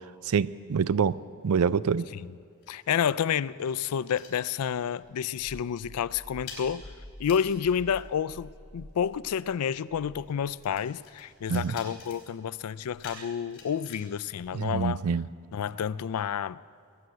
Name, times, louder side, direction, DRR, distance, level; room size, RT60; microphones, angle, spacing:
voice 1, 0.3-1.1 1.4-2.1 11.5-11.8 14.5-15.3, right 6 dB, 75° right, 0.4 m, -26 dB
sound 1, 2.4-5.0 5.3-5.5 5.8-15.2, left 4 dB, 60° left, 4.1 m, -51 dB
voice 2, 2.7-6.8 7.2-15.0 15.5-16.6, left 8 dB, 90° left, 0.4 m, -30 dB
sound 2, 5.0-10.9 11.3-11.7 12.8-13.1 14.3-14.7, left 1 dB, 20° right, 2.1 m, -49 dB
19.5 x 9.6 x 7.9 m
head